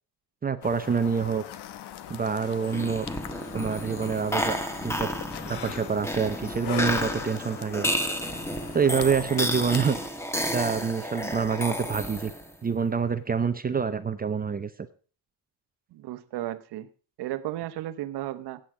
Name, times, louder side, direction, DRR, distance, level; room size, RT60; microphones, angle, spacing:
voice 1, 0.4-1.4 2.1-3.1 3.5-4.6 4.8-5.1 5.4-7.9 8.7-10.0 10.5-12.3 12.6-14.7, right 6 dB, 20° right, 10 dB, 0.6 m, -26 dB
sound 1, 0.6-10.1, left 11 dB, 70° left, 1.0 m, -40 dB
sound 2, 2.6-12.5, equal, 5° left, 1.4 m, -31 dB
voice 2, 15.9-16.9 17.2-18.6, right 14 dB, 70° right, 11 dB, 1.0 m, -34 dB
15.5 x 8.9 x 4.8 m, 0.39 s
cardioid pair, 135°, 41 cm